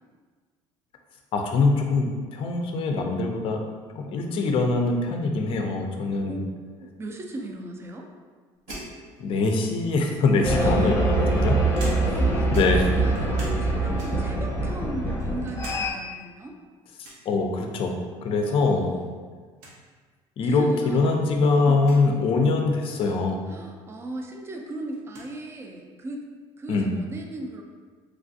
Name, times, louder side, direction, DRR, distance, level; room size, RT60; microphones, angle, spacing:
voice 1, 1.3-3.6 3.9-6.4 8.7-8.8 9.2-11.6 12.5-12.9 17.3-17.9 18.2-19.0 20.4-23.5 26.7-27.0, left 3 dB, 50° left, 3 dB, 0.4 m, -23 dB
voice 2, 6.2-8.1 10.6-11.0 12.0-16.6 18.3-19.2 20.4-22.0 23.5-26.2 26.6-27.6, right 1 dB, 20° right, 2 dB, 0.4 m, -38 dB
sound 1, 8.7-9.8 10.7-12.3 12.5-13.7 14.0-14.4 14.8-15.8 16.1-16.2 17.0-17.3 18.7-19.1 19.3-19.4 19.6-19.8 20.6-20.7 21.8-22.0 23.7-23.8 24.2-25.3, right 1 dB, 90° right, 0.8 m, -43 dB
sound 2, 10.4-15.9, right 2 dB, 20° left, 0.9 m, -24 dB
3.2 x 2.3 x 2.6 m, 1.5 s
cardioid pair, 110°, 12 cm